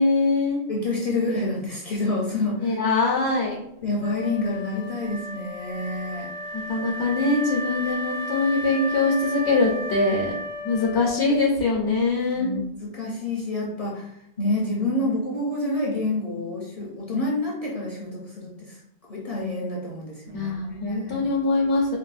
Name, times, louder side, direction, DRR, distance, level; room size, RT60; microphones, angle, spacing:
voice 1, 0.0-0.6 2.6-3.6 6.5-10.3 10.6-12.5 17.1-17.2 20.3-22.0, left 3 dB, 80° left, -4 dB, 1.0 m, -23 dB
voice 2, 0.7-2.8 3.8-6.3 6.8-6.9 12.3-18.8 19.1-21.3, left 2 dB, 40° left, -4 dB, 0.6 m, -28 dB
Wind instrument woodwind instrument, 4.0-11.6, left 1 dB, 90° right, 1.0 m, -34 dB
4.5 x 2.0 x 2.4 m, 0.76 s
omnidirectional pair, 1.1 m